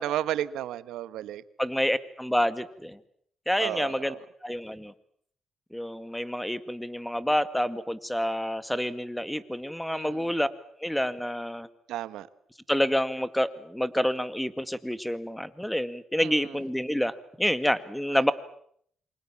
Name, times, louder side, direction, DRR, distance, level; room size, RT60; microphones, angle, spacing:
voice 1, 0.0-1.4 3.6-4.2 9.9-10.3 11.9-12.3 16.2-16.6 18.1-18.3, right 12 dB, 85° right, 14 dB, 1.4 m, -33 dB
voice 2, 1.6-3.0 3.5-4.1 4.4-4.9 5.7-10.5 10.8-11.7 12.7-18.3, equal, 5° left, 13 dB, 2.0 m, -28 dB
28.0 x 26.0 x 7.3 m, 0.66 s
cardioid pair, 90°, 0 cm